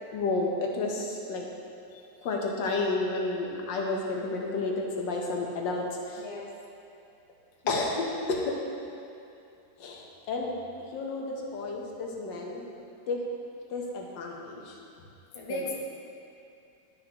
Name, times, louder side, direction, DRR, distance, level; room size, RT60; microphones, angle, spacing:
voice 1, 0.1-1.5 2.2-6.2 7.7-8.5 9.8-10.5 10.9-12.6 13.1-13.2 13.7-14.8 15.5-15.7, left 3 dB, 70° left, -1 dB, 1.5 m, -31 dB
voice 2, 1.9-2.3 6.2-6.5 7.6-7.9 15.3-15.7, left 1 dB, 30° left, -3 dB, 0.6 m, -38 dB
11.5 x 6.3 x 2.9 m, 2.6 s
omnidirectional pair, 2.1 m